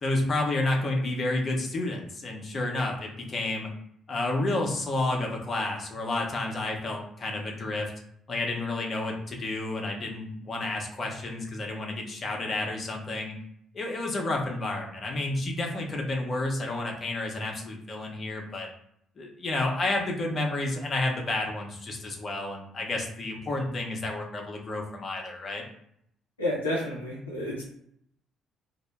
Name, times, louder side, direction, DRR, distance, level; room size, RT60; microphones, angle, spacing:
voice 1, 0.0-3.7 4.1-7.9 8.3-13.3 13.7-18.7 19.2-25.6, left 2 dB, 40° left, 1 dB, 0.6 m, -30 dB
voice 2, 26.4-27.6, left 1 dB, 90° left, -4 dB, 0.5 m, -30 dB
2.0 x 2.0 x 3.1 m, 0.71 s
figure-of-eight pair, 45°, 0 cm